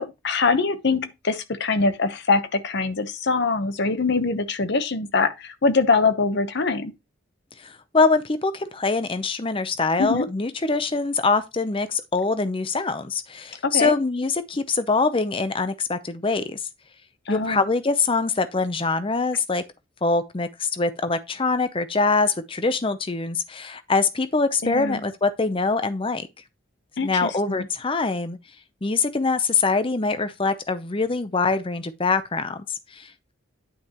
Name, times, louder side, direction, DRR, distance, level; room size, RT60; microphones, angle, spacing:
voice 1, 0.0-6.9 10.0-10.3 13.6-13.9 17.3-17.6 24.6-25.0 27.0-27.7, left 4 dB, 55° left, 0.9 m, -23 dB
voice 2, 7.6-16.6 17.3-19.6 20.0-26.3 27.0-28.4 28.8-33.3, left 4 dB, 25° left, 0.6 m, -24 dB
9.7 x 5.8 x 2.9 m
head